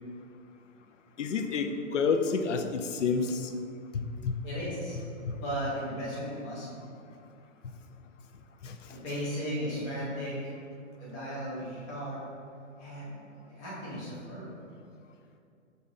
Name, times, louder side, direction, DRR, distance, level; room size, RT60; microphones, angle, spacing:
voice 1, 1.2-3.5 3.9-4.4 5.2-5.4 7.6-7.7 8.6-9.0, left 5 dB, 75° left, 7 dB, 0.5 m, -30 dB
voice 2, 4.4-5.0 5.4-6.8 8.9-10.5 11.0-12.2 12.8-13.2 13.5-14.5, equal, 5° left, -9 dB, 0.3 m, -36 dB
5.5 x 2.7 x 3.6 m, 2.4 s
figure-of-eight pair, 120°, 38 cm